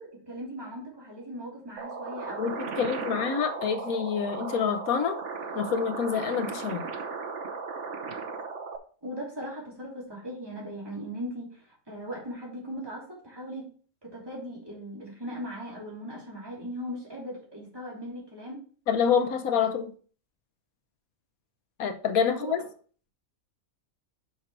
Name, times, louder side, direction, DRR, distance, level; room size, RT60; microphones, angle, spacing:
voice 1, 0.0-3.1 9.0-13.7 14.0-18.6 22.3-22.5, equal, 15° right, -4 dB, 3.1 m, -39 dB
sound 1, 1.8-8.8, right 4 dB, 60° right, 1.3 m, -36 dB
voice 2, 2.4-5.2 5.5-6.8 18.9-19.9 21.8-22.6, left 7 dB, 80° left, 8 dB, 1.4 m, -27 dB
6.3 x 5.9 x 4.7 m, 0.42 s
omnidirectional pair, 1.5 m